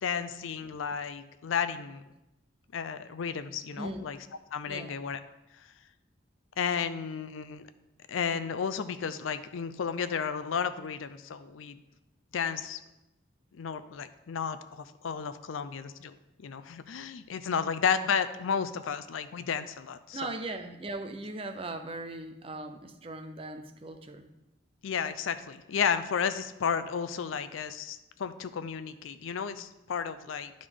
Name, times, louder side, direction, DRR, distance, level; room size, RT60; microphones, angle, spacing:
voice 1, 0.0-2.0 2.7-4.2 4.5-5.2 6.6-7.7 8.1-11.8 12.3-12.8 13.5-16.2 16.4-20.3 24.8-30.5, left 6 dB, 90° left, 11 dB, 0.4 m, -32 dB
voice 2, 4.7-5.0 20.1-24.3, right 2 dB, 30° right, 7 dB, 0.5 m, -39 dB
9.8 x 5.0 x 3.7 m, 0.94 s
head